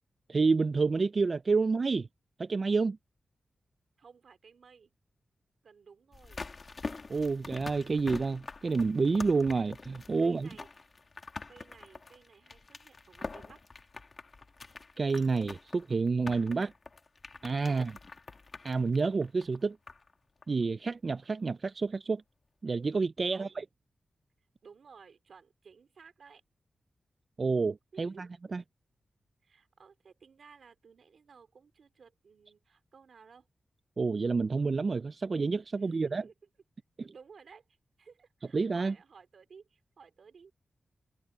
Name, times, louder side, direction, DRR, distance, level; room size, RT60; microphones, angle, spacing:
voice 1, 0.3-2.1 2.4-3.0 7.1-10.5 15.0-16.7 17.4-17.9 18.6-19.8 20.5-22.2 22.6-23.5 27.4-28.3 28.5-28.6 34.0-36.2 37.0-37.1 38.5-38.9, right 4 dB, 40° right, 0.3 m, -29 dB
voice 2, 4.0-4.9 5.6-6.4 10.2-10.9 11.5-13.6 17.6-17.9 23.3-23.6 24.6-26.4 27.9-28.3 29.4-33.5 35.7-36.3 37.1-40.5, right 5 dB, 65° right, 2.8 m, -56 dB
sound 1, 6.1-20.1 20.4-20.5, left 3 dB, 40° left, 1.5 m, -45 dB
wide cardioid pair, 175°, 0 cm